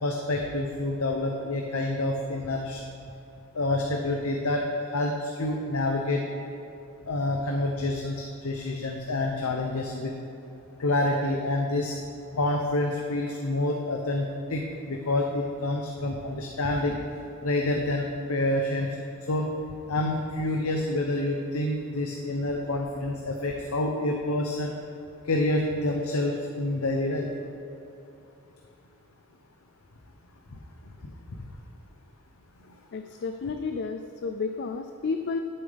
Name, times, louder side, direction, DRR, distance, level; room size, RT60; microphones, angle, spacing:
voice 1, 0.0-2.8 3.5-4.6 4.9-6.2 7.1-10.1 10.8-12.0 12.3-17.0 17.4-19.0 19.3-19.5 19.9-24.7 25.3-27.3, left 2 dB, 90° left, 2 dB, 0.8 m, -28 dB
voice 2, 32.9-35.4, left 4 dB, 55° left, 7 dB, 0.4 m, -31 dB
11.0 x 8.7 x 3.5 m, 2.8 s
head